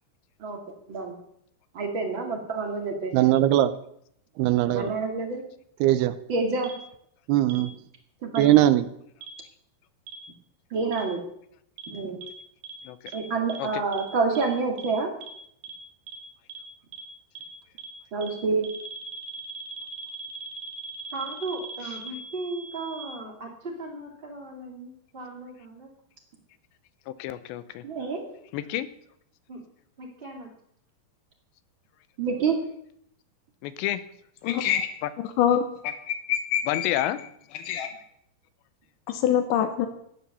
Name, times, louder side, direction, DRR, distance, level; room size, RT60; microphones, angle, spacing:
voice 1, 1.7-3.4 4.6-5.4 6.3-6.7 8.2-8.5 10.7-11.2 11.9-12.2 13.1-15.1 18.1-18.7 27.8-28.3 32.2-32.6, right 4 dB, 40° right, 3 dB, 1.8 m, -27 dB
voice 2, 3.1-3.7 4.4-4.9 5.8-6.1 7.3-7.7 8.4-8.9, right 14 dB, 80° right, 13 dB, 2.5 m, -20 dB
sound 1, 6.6-6.7 7.5-7.6 8.4-8.5 9.2-9.3 10.1-10.2 10.9-11.0 11.8-11.9 12.2-12.3 12.6-12.7 13.1-13.2 13.5-13.6 13.9-14.0 14.4-14.5 14.8-14.9 15.2-15.3 15.6-15.7 16.1-16.2 16.5-16.6 16.9-17.0 17.4-17.5 17.8-17.9 18.2-18.3 18.6-23.0, right 6 dB, 60° right, 5.1 m, -40 dB
voice 3, 12.9-13.2 13.6-13.8 27.1-27.8 28.5-28.9 33.6-34.0 35.0-35.1 36.7-37.2, left 13 dB, 90° left, 14 dB, 3.0 m, -29 dB
voice 4, 21.1-25.9 29.5-29.6 30.0-30.5, right 2 dB, 15° right, -1 dB, 2.6 m, -37 dB
voice 5, 34.4-34.9 35.2-37.1 37.6-37.9 39.1-39.9, left 9 dB, 75° left, 6 dB, 2.0 m, -25 dB
13.5 x 10.0 x 6.9 m, 0.71 s
omnidirectional pair, 4.9 m